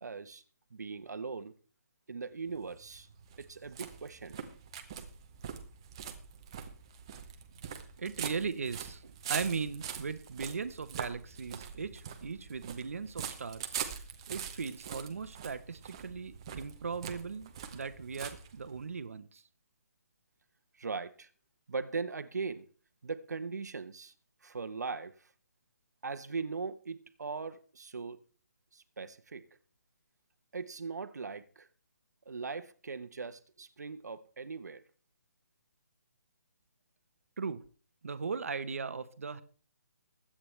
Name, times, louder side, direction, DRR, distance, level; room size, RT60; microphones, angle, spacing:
voice 1, 0.0-0.4 0.7-1.5 2.1-3.1 3.4-4.4 20.8-21.3 21.7-22.7 23.0-24.1 24.4-25.1 26.0-28.2 28.7-29.5 30.5-31.7 32.3-34.8, right 4 dB, 80° right, 1.1 m, -39 dB
sound 1, 2.4-18.9, right 8 dB, 15° right, 0.8 m, -43 dB
voice 2, 8.0-13.8 14.3-19.4 37.4-37.6 38.0-39.4, right 5 dB, 55° right, 1.0 m, -38 dB
21.0 x 8.8 x 3.3 m
hypercardioid pair, 180°, 9 cm